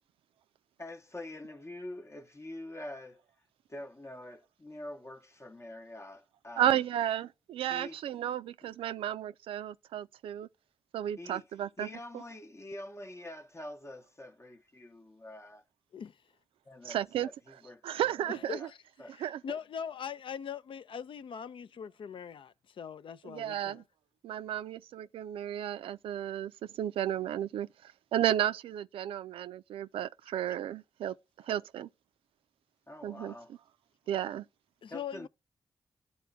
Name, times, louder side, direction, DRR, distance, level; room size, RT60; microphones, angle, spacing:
voice 1, 0.8-3.2 3.7-6.8 7.7-8.0 8.6-8.7 11.2-11.4 11.8-15.6 16.7-18.7 19.0-19.2 32.9-33.5 34.9-35.3, left 1 dB, 30° left, 0.8 m, -45 dB
voice 2, 6.6-10.5 10.9-11.9 16.9-17.3 17.8-18.6 19.2-19.4 23.2-23.8 24.2-31.2 31.5-31.9 33.0-33.3 34.1-34.4, right 11 dB, 90° right, 0.4 m, -33 dB
voice 3, 18.3-18.8 19.1-23.8 34.8-35.3, left 7 dB, 70° left, 0.5 m, -41 dB
12.0 x 4.1 x 2.3 m
supercardioid pair, 40°, 9 cm